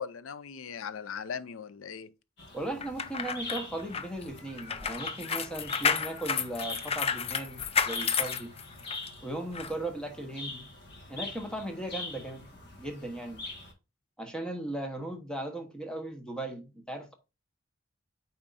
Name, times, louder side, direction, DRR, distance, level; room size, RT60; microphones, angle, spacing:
voice 1, 0.0-2.1, left 7 dB, 85° left, 0.5 m, -39 dB
sound 1, 2.4-13.7, left 2 dB, 55° left, 1.7 m, -44 dB
voice 2, 2.5-8.5 9.2-10.7 11.1-12.5 12.8-13.4 14.2-17.1, right 1 dB, 5° left, 1.1 m, -37 dB
sound 2, 2.8-9.1 9.5-9.7, left 6 dB, 30° left, 0.5 m, -31 dB
8.9 x 4.3 x 2.6 m
head